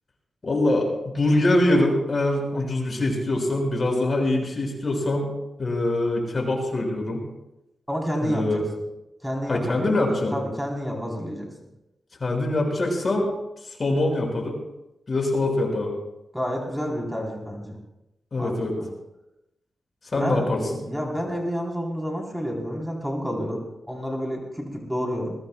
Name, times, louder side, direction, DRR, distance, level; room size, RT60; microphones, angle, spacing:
voice 1, 0.4-5.3 5.6-7.2 8.2-8.6 9.5-10.3 12.2-13.3 13.6-14.6 15.1-15.9 18.3-18.7 20.1-20.6, left 1 dB, 50° left, 1 dB, 6.1 m, -23 dB
voice 2, 7.9-8.6 9.2-9.9 10.3-11.5 16.3-17.8 18.4-18.9 20.1-25.3, equal, ahead, -1 dB, 3.8 m, -29 dB
21.5 x 20.5 x 2.3 m, 0.92 s
cardioid pair, 60°, 0 cm